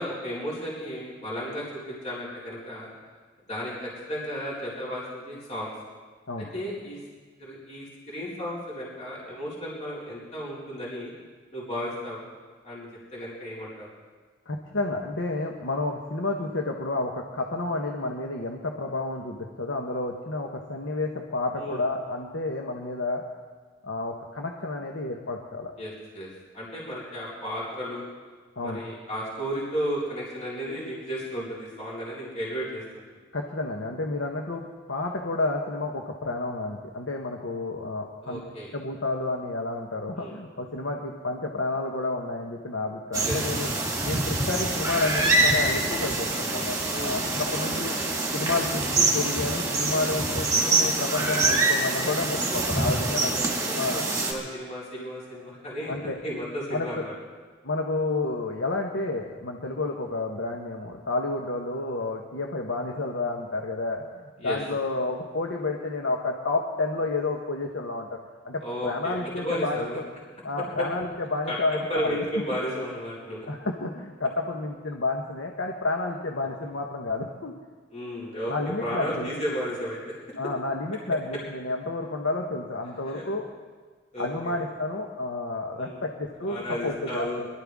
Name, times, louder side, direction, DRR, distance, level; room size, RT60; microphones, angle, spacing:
voice 1, 0.0-2.9 3.5-5.7 6.5-7.0 7.4-11.1 11.5-12.2 12.6-13.9 21.6-21.8 25.8-26.3 26.5-28.0 28.6-33.0 38.2-38.7 40.2-40.3 43.2-43.4 46.9-47.2 53.3-57.1 64.4-64.6 68.6-70.0 70.6-70.9 71.5-73.5 77.9-78.5 78.8-80.1 83.0-83.2 84.1-84.6 85.8-86.0 86.5-87.5, equal, 35° left, -7 dB, 4.2 m, -34 dB
voice 2, 14.5-23.2 23.8-25.7 28.6-28.8 33.3-38.4 38.7-43.7 44.0-47.9 48.3-54.1 55.9-56.2 56.7-57.0 57.6-64.0 64.4-68.2 68.4-69.9 70.4-72.1 73.5-77.5 78.5-79.3 80.4-83.5 84.2-87.5, left 2 dB, 70° left, 1 dB, 1.2 m, -30 dB
sound 1, 43.1-54.3, right 2 dB, 20° right, 2.1 m, -25 dB
22.5 x 13.0 x 3.6 m, 1.5 s
head